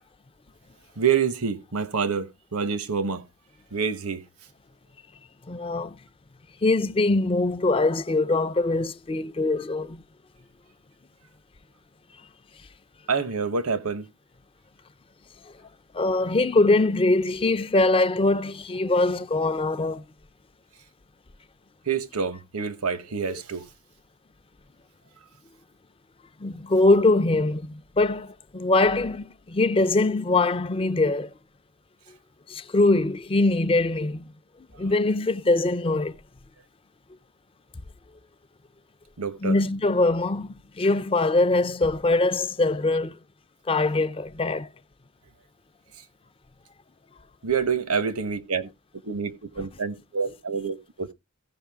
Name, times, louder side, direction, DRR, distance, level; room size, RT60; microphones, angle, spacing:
voice 1, 1.0-3.2 3.7-4.2 13.1-14.0 21.9-23.6 34.7-34.8 39.2-39.6 47.4-48.7 49.0-51.1, right 6 dB, 85° right, 1.1 m, -27 dB
voice 2, 5.5-6.0 6.6-10.0 15.9-20.0 26.4-31.3 32.5-34.3 34.8-36.2 39.4-40.5 40.8-43.2 43.7-44.7, left 2 dB, 25° left, 0.5 m, -22 dB
15.5 x 5.5 x 3.5 m
head